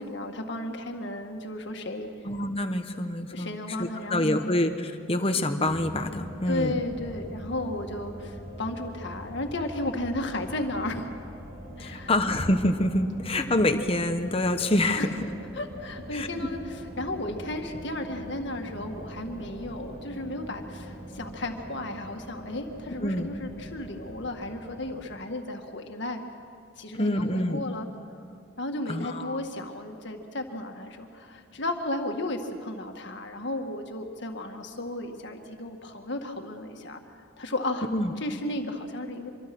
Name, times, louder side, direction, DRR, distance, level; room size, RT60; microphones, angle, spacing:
voice 1, 0.0-2.1 3.3-4.5 6.5-11.1 11.8-12.1 15.0-15.1 15.5-16.6 17.0-26.2 26.8-27.9 28.6-37.0 37.4-37.9 38.2-39.3, left 1 dB, 55° left, 4 dB, 1.9 m, -34 dB
voice 2, 2.2-6.8 11.8-15.1 16.1-16.3 23.0-23.3 26.9-27.6 28.9-29.4 37.9-38.1, left 1 dB, 25° left, 6 dB, 1.2 m, -26 dB
sound 1, 5.6-24.9, equal, 40° right, 5.5 m, -42 dB
25.5 x 23.5 x 6.2 m, 2.4 s
head